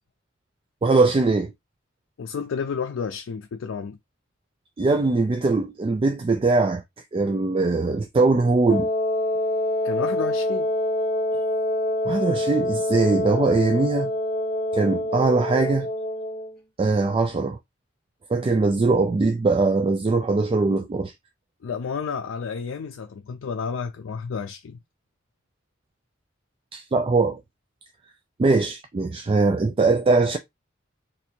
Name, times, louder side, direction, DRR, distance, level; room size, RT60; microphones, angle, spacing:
voice 1, 0.8-1.5 4.8-6.8 7.1-8.9 12.0-14.1 14.7-15.9 16.8-17.6 18.3-21.1 26.7-27.4 28.4-30.4, right 3 dB, 30° right, 0.3 m, -21 dB
voice 2, 2.2-4.0 9.8-10.7 21.6-24.8, left 6 dB, 85° left, 0.4 m, -31 dB
Wind instrument woodwind instrument, 8.7-16.5, left 1 dB, 50° left, 0.9 m, -26 dB
2.7 x 2.6 x 4.3 m
head